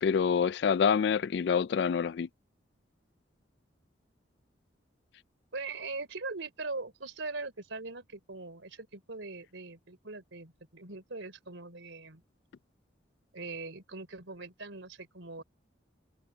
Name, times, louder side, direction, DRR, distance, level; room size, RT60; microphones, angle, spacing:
voice 1, 0.0-2.3, left 6 dB, 60° left, 0.3 m, -26 dB
voice 2, 5.5-12.2 13.3-15.4, right 3 dB, 80° right, 3.5 m, -41 dB
head